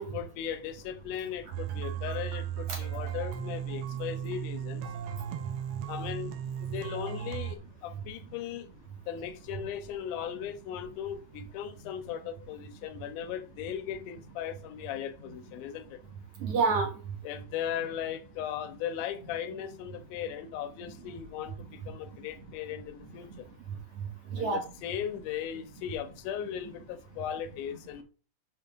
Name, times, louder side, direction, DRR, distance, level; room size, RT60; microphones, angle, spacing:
voice 1, 0.1-4.8 5.9-6.3 6.6-8.7 9.1-16.0 17.2-23.5 24.4-28.0, left 9 dB, 80° left, 2.2 m, -37 dB
sound 1, 1.5-7.6, right 9 dB, 80° right, 1.2 m, -36 dB
voice 2, 5.1-5.5 16.4-17.2 23.7-24.6, right 4 dB, 55° right, 1.9 m, -31 dB
6.7 x 6.0 x 3.4 m
omnidirectional pair, 3.7 m